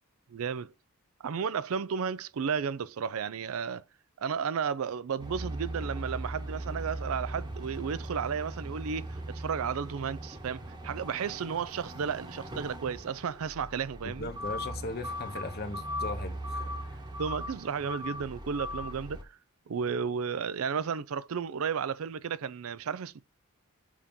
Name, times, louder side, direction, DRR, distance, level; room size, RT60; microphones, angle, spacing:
voice 1, 0.3-0.7 1.2-3.8 4.2-14.3 17.2-19.2 19.7-23.2, right 6 dB, 70° right, 0.4 m, -33 dB
sound 1, 5.2-19.2, equal, 20° right, 1.0 m, -39 dB
voice 2, 14.0-17.0, left 2 dB, 45° left, 0.8 m, -38 dB
7.3 x 2.8 x 5.2 m
head